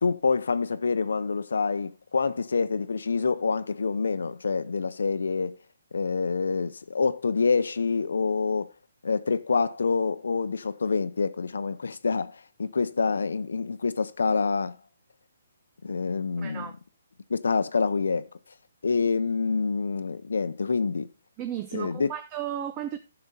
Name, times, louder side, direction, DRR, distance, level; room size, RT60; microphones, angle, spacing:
voice 1, 0.0-5.6 5.9-8.7 9.0-14.8 15.8-16.7 17.3-18.3 18.8-21.1 21.7-22.1, left 4 dB, 75° left, 0.6 m, -26 dB
voice 2, 16.4-16.8 21.4-23.0, right 10 dB, 25° right, 0.7 m, -34 dB
10.5 x 6.6 x 4.1 m
figure-of-eight pair, 140°, 0 cm